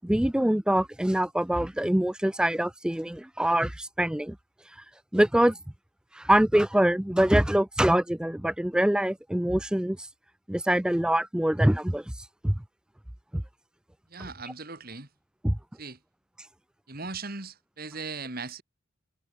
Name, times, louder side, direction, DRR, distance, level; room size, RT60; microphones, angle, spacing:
voice 1, 0.0-4.4 5.1-5.6 6.2-10.0 10.5-12.0 12.4-12.5 15.4-15.6, right 1 dB, 5° right, 0.3 m, -24 dB
voice 2, 14.1-15.1 15.8-16.0 16.9-18.6, right 4 dB, 45° right, 3.0 m, -38 dB
head